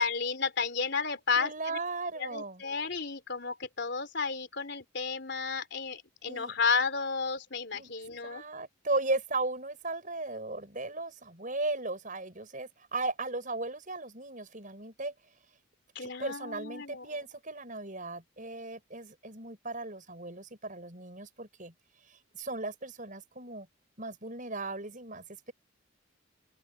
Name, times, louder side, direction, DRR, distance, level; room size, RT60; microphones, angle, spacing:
voice 1, 0.0-1.8 2.2-8.4 16.0-17.1, left 5 dB, 55° left, 3.8 m, -32 dB
voice 2, 1.4-2.6 6.2-6.5 7.7-7.9 8.2-15.1 16.0-21.7 22.3-23.7 24.0-25.5, right 2 dB, 40° right, 6.8 m, -36 dB
open air
head